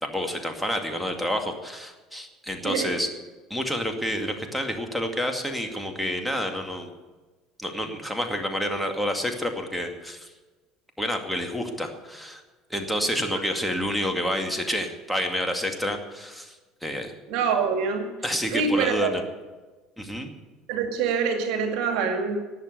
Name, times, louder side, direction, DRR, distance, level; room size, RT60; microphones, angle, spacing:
voice 1, 0.0-3.1 3.5-6.9 7.6-10.3 11.0-12.4 12.7-16.5 16.8-17.1 18.2-19.2 20.0-20.3, equal, ahead, 3 dB, 2.3 m, -29 dB
voice 2, 2.6-3.0 17.3-18.1 18.5-19.2 20.7-22.4, right 5 dB, 60° right, 5 dB, 2.3 m, -25 dB
19.0 x 7.6 x 8.3 m, 1.3 s
hypercardioid pair, 65°, 0 cm